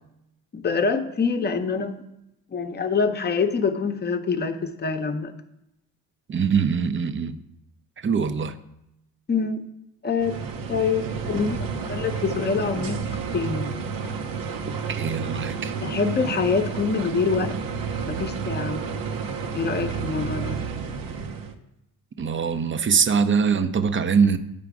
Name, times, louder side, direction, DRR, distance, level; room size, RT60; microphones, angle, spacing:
voice 1, 0.5-2.1 2.5-5.3 9.3-9.6 10.0-10.4 10.7-13.1 13.3-13.7 15.8-17.6 18.1-18.8 19.5-20.6, left 5 dB, 25° left, 6 dB, 0.8 m, -25 dB
voice 2, 6.3-7.4 8.0-8.6 14.6-15.7 22.2-24.4, right 6 dB, 30° right, 10 dB, 0.6 m, -23 dB
sound 1, 10.2-21.5, right 5 dB, 65° right, 0.9 m, -31 dB
8.4 x 4.9 x 4.8 m, 0.85 s
supercardioid pair, 65°, 37 cm